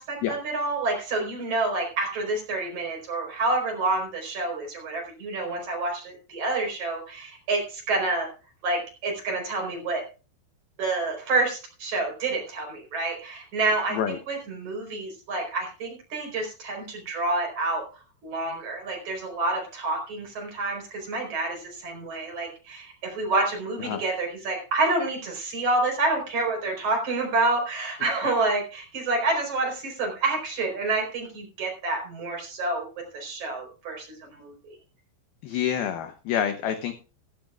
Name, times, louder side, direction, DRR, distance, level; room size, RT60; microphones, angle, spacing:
voice 1, 0.0-8.3 8.6-10.0 10.8-17.8 18.2-32.9 33.1-34.5, right 2 dB, 40° right, 1 dB, 5.4 m, -28 dB
voice 2, 35.4-36.9, left 9 dB, 80° left, 8 dB, 2.2 m, -27 dB
15.5 x 15.5 x 2.4 m, 0.33 s
omnidirectional pair, 5.6 m